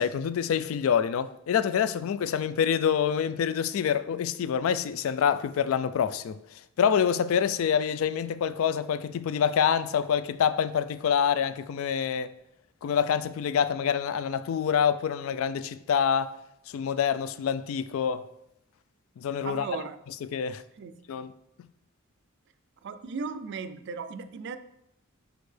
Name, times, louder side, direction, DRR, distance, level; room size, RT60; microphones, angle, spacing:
voice 1, 0.0-12.3 12.8-16.3 16.7-18.3 19.2-19.7 20.2-20.6 21.1-21.3, left 7 dB, 70° left, 0.3 m, -26 dB
voice 2, 19.4-20.0 20.8-20.9 22.8-24.6, right 5 dB, 55° right, 0.4 m, -36 dB
6.3 x 5.1 x 3.3 m
head